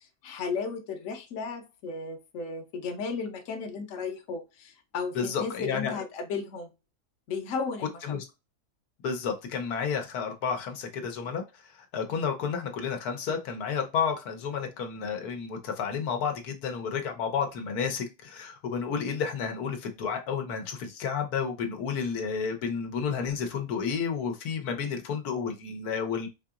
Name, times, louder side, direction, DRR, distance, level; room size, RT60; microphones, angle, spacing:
voice 1, 0.2-6.7 7.3-8.2, left 5 dB, 65° left, 1.0 m, -34 dB
voice 2, 5.2-6.0 7.8-8.3 9.0-11.4 11.9-26.3, left 6 dB, 90° left, 1.3 m, -31 dB
4.2 x 2.8 x 2.4 m
omnidirectional pair, 1.6 m